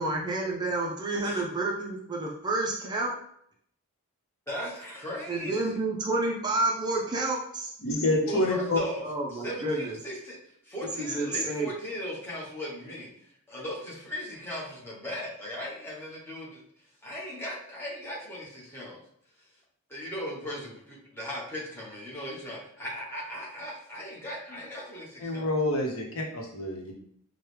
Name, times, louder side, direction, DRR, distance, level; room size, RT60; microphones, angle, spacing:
voice 1, 0.0-3.1 5.3-7.7 9.0-10.0 11.0-11.7, right 2 dB, 20° right, -1 dB, 0.5 m, -29 dB
voice 2, 4.5-5.8 8.2-9.0 9.3-10.4 10.6-13.1 13.5-16.6 17.0-19.0 19.9-25.5, equal, 10° left, -6 dB, 1.1 m, -38 dB
voice 3, 7.8-8.8 25.2-26.1 26.5-26.9, left 2 dB, 65° left, -1 dB, 0.9 m, -27 dB
4.6 x 2.2 x 3.2 m, 0.68 s
head